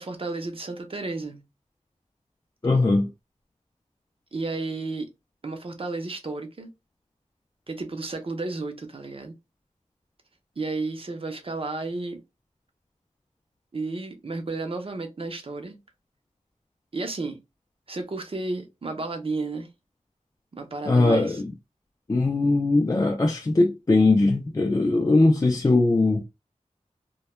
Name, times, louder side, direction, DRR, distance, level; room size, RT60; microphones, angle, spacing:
voice 1, 0.0-1.4 4.3-5.1 5.4-6.7 7.7-9.3 10.6-12.2 13.7-15.8 16.9-17.4 17.9-19.7 20.5-21.4, right 3 dB, 50° right, 0.6 m, -32 dB
voice 2, 2.6-3.1 20.9-21.4 22.1-26.2, left 2 dB, 30° left, 0.4 m, -20 dB
2.2 x 2.2 x 2.9 m
wide cardioid pair, 80°, 13 cm